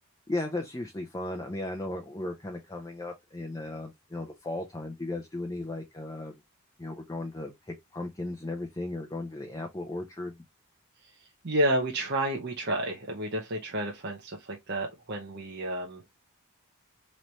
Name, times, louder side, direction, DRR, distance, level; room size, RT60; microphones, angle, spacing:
voice 1, 0.3-6.3 6.8-10.4, left 2 dB, 15° left, 0.6 m, -36 dB
voice 2, 11.4-16.0, right 1 dB, 50° right, 0.8 m, -30 dB
4.0 x 3.2 x 3.1 m
head